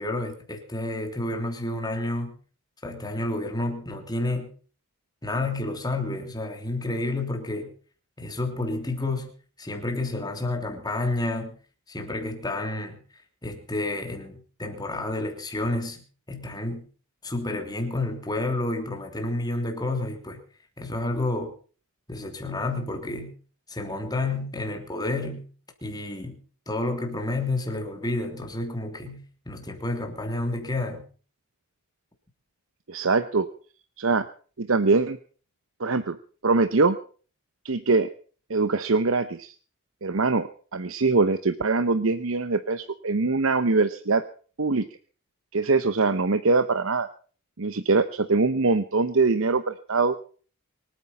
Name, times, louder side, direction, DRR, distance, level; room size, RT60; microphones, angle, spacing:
voice 1, 0.0-2.4 2.8-4.5 5.2-7.7 8.2-9.3 9.6-11.6 11.9-13.0 13.4-16.9 17.2-20.4 20.8-21.5 22.1-23.3 23.7-25.5 25.8-26.4 26.7-31.1, left 2 dB, 20° left, 4 dB, 3.2 m, -30 dB
voice 2, 32.9-33.5 34.0-34.3 34.6-35.2 35.8-36.2 36.4-37.0 37.6-38.1 38.5-39.5 40.0-44.2 44.6-44.9 45.5-47.1 47.6-50.2, right 3 dB, 65° right, 11 dB, 0.9 m, -23 dB
24.5 x 9.1 x 5.6 m, 0.42 s
head